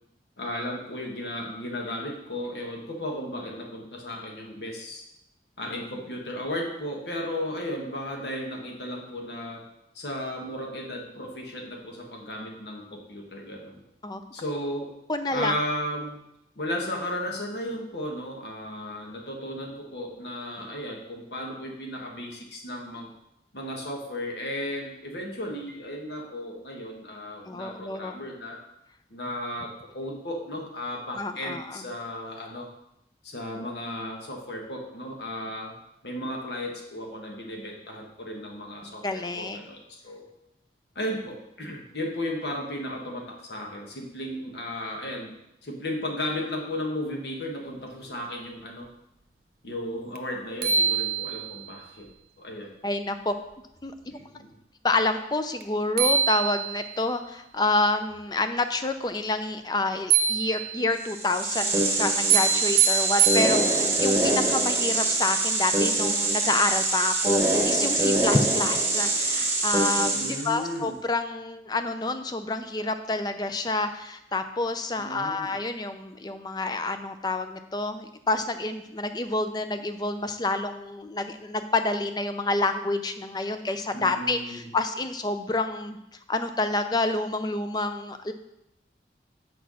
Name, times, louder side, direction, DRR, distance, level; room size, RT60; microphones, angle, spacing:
voice 1, 0.4-5.0 5.6-9.6 9.9-13.8 14.3-14.9 15.3-16.2 16.5-23.1 23.5-28.6 29.1-32.7 33.2-35.7 36.0-40.3 40.9-45.3 45.6-48.9 49.6-52.1 52.4-52.7 54.1-54.5 70.1-71.0 75.0-75.5 83.9-84.6, left 1 dB, 70° left, 0 dB, 1.5 m, -35 dB
voice 2, 15.1-15.5 27.5-28.2 31.2-31.8 38.8-39.6 52.8-53.3 53.8-54.2 54.8-86.0 86.3-88.3, left 2 dB, 25° left, 8 dB, 0.4 m, -28 dB
sound 1, 50.2-50.3 50.6-51.7 55.6-55.7 56.0-57.0 60.1-61.0 62.3-64.0, right 7 dB, 60° right, 0.7 m, -24 dB
sound 2, 61.0-70.6, right 2 dB, 15° right, 1.1 m, -24 dB
6.2 x 4.6 x 6.2 m, 0.83 s
head